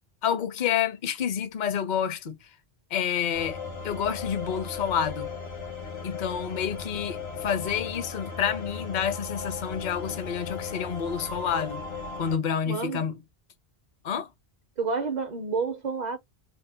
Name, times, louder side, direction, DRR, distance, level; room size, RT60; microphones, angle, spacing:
voice 1, 0.2-2.5 2.9-3.6 3.8-5.3 6.0-11.8 12.2-13.2 14.0-14.3, left 8 dB, 55° left, 0.6 m, -29 dB
sound 1, 3.3-12.4, left 5 dB, 80° left, 1.2 m, -36 dB
voice 2, 12.7-13.1 14.8-16.2, right 4 dB, 50° right, 0.6 m, -29 dB
2.7 x 2.1 x 3.4 m
omnidirectional pair, 1.1 m